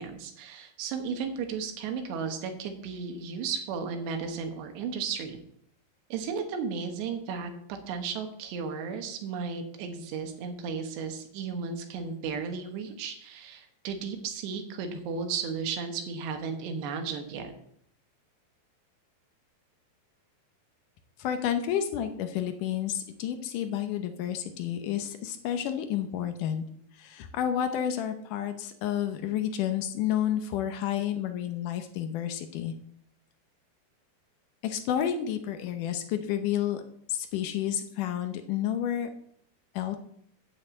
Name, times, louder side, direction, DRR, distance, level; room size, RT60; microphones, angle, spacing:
voice 1, 0.0-5.4 6.1-17.5, right 5 dB, 90° right, 5 dB, 3.5 m, -34 dB
voice 2, 21.2-26.6 27.0-32.7 34.6-36.8 37.1-39.1 39.7-40.0, left 10 dB, 75° left, 7 dB, 1.9 m, -30 dB
9.2 x 5.8 x 8.1 m, 0.68 s
omnidirectional pair, 4.8 m